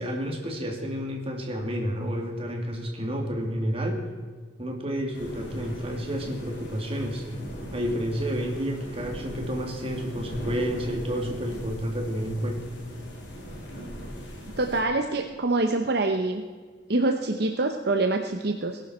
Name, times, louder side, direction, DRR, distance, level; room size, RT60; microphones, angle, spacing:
voice 1, 0.0-4.0 4.6-7.2 7.7-12.6, equal, 30° right, 1 dB, 2.5 m, -30 dB
sound 1, 5.1-14.8, equal, 65° left, 3.8 m, -40 dB
voice 2, 14.6-16.4 16.9-18.8, right 2 dB, 60° right, 5 dB, 0.9 m, -25 dB
19.0 x 11.5 x 4.4 m, 1.5 s
head